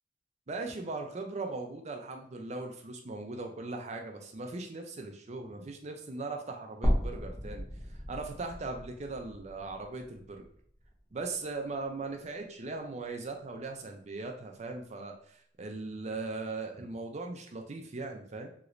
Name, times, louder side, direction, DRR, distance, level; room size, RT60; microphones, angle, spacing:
voice 1, 0.5-7.6 7.9-10.4 11.1-18.5, right 3 dB, 40° right, 3 dB, 0.5 m, -39 dB
sound 1, 6.8-11.0 11.4-11.5 12.9-13.0, equal, 20° left, 0.6 m, -34 dB
3.0 x 3.0 x 2.5 m, 0.65 s
head